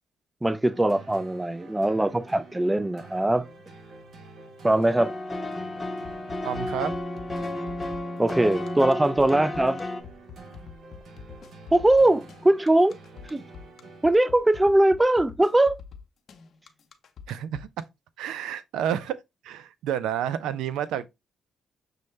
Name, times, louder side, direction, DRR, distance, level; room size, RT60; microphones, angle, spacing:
voice 1, 0.4-3.5 4.6-5.1 8.2-9.8 11.7-13.0 13.3-13.4 14.0-15.8, right 1 dB, 15° right, 0.4 m, -21 dB
sound 1, 0.7-14.5, right 3 dB, 65° right, 0.9 m, -48 dB
sound 2, 5.0-10.0, left 1 dB, 15° left, 0.8 m, -32 dB
sound 3, 6.0-17.8, left 6 dB, 60° left, 0.6 m, -45 dB
voice 2, 6.4-6.9 17.3-17.7 18.2-19.2 19.4-21.1, right 10 dB, 85° right, 0.3 m, -30 dB
6.3 x 2.1 x 3.1 m
cardioid pair, 75°, 0 cm